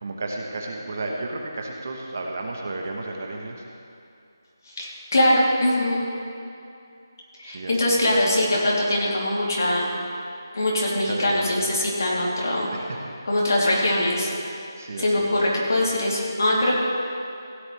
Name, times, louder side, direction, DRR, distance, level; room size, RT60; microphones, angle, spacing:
voice 1, 0.0-3.6 7.4-8.0 11.0-11.7 12.7-13.0 14.8-15.3, right 2 dB, 35° right, 1 dB, 1.1 m, -33 dB
voice 2, 4.8-6.0 7.4-9.9 10.5-12.7 13.2-14.3 15.0-16.8, left 1 dB, 50° left, -5 dB, 3.1 m, -22 dB
16.0 x 10.5 x 3.4 m, 2.6 s
figure-of-eight pair, 175°, 2 cm